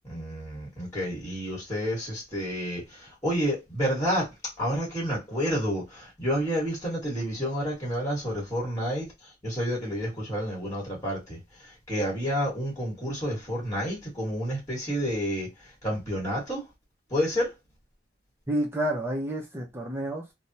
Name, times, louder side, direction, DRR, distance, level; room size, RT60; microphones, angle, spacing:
voice 1, 0.0-4.3 4.6-16.6 17.1-17.5, equal, 15° left, 1.3 m, -30 dB
voice 2, 18.5-20.3, right 1 dB, 15° right, 0.6 m, -29 dB
3.4 x 2.1 x 2.7 m
head